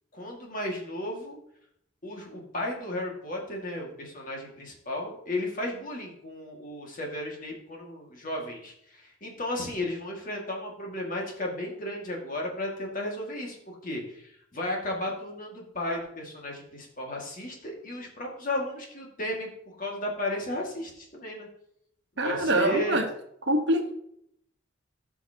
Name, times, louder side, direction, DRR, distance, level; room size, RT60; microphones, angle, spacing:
voice 1, 0.1-1.4 2.0-21.5 22.2-23.0, left 1 dB, 40° left, -1 dB, 2.0 m, -34 dB
voice 2, 22.2-23.0 23.5-23.9, right 1 dB, 60° right, 4 dB, 1.2 m, -24 dB
15.5 x 5.7 x 2.9 m, 0.72 s
head